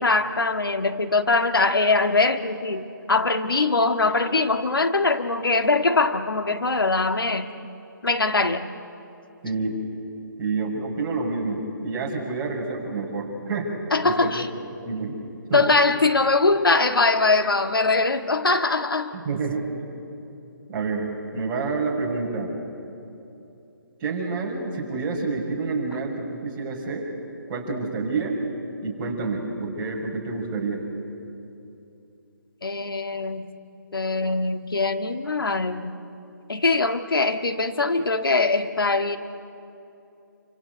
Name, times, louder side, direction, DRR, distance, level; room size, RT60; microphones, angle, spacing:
voice 1, 0.0-7.5 8.0-8.7 13.9-14.5 15.5-19.1 32.6-33.5 33.9-35.9 36.5-39.2, left 3 dB, 85° left, 8 dB, 1.7 m, -22 dB
voice 2, 9.4-9.8 10.4-13.7 14.0-14.3 14.8-15.2 15.5-15.7 19.1-19.7 20.7-22.6 24.0-27.1 27.5-28.4 28.8-30.8, right 3 dB, 20° right, -2 dB, 5.7 m, -28 dB
28.5 x 25.0 x 8.1 m, 2.8 s
figure-of-eight pair, 150°, 11 cm